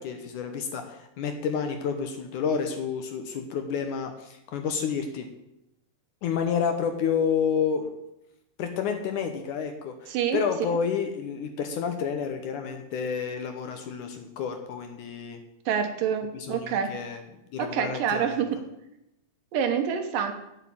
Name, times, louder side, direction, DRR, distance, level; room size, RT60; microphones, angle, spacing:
voice 1, 0.0-5.3 6.2-7.9 8.6-15.4 16.3-17.2 17.5-18.4, left 6 dB, 70° left, 6 dB, 2.0 m, -30 dB
voice 2, 10.1-10.4 15.7-16.9 17.6-18.6 19.5-20.3, right 7 dB, 70° right, 6 dB, 2.5 m, -27 dB
8.2 x 8.1 x 8.8 m, 0.86 s
omnidirectional pair, 4.5 m